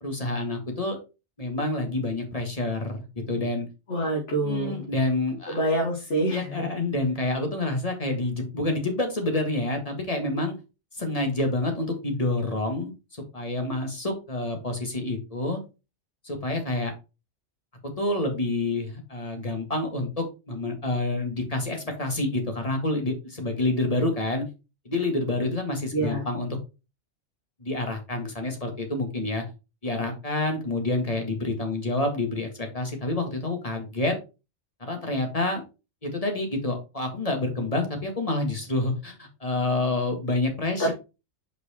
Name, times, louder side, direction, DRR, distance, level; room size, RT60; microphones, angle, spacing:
voice 1, 0.0-1.0 1.4-3.7 4.4-5.6 6.3-10.6 10.9-15.6 16.2-16.9 18.0-24.4 24.9-26.6 27.6-29.4 29.8-34.1 34.8-35.6 36.0-40.9, left 2 dB, 30° left, 3 dB, 1.8 m, -28 dB
voice 2, 3.9-4.8 5.5-6.7 25.9-26.2 40.8-40.9, right 1 dB, 75° left, -3 dB, 2.3 m, -26 dB
5.6 x 4.6 x 4.3 m, 0.28 s
omnidirectional pair, 1.2 m